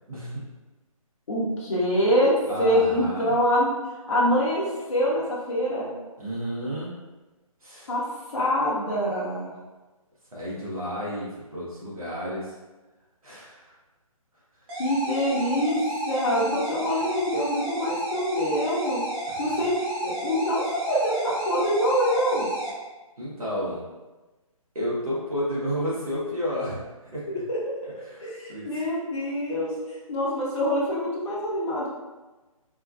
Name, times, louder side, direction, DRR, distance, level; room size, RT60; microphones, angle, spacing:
voice 1, 0.1-0.4 2.5-3.4 6.2-6.9 7.6-7.9 10.3-12.5 13.2-13.7 19.3-19.4 23.2-23.8 24.7-26.8 27.1-27.3 28.0-28.9, equal, 75° right, -7 dB, 1.1 m, -31 dB
voice 2, 1.3-2.3 2.6-3.7 4.1-5.9 7.9-8.0 8.3-9.5 14.8-15.8 16.1-19.0 19.4-19.8 20.0-22.5 27.5-27.6 28.2-31.9, equal, 55° left, -6 dB, 0.8 m, -25 dB
sound 1, 14.7-22.7, right 1 dB, 25° right, 0.9 m, -32 dB
3.5 x 2.3 x 2.3 m, 1.2 s
figure-of-eight pair, 145°, 18 cm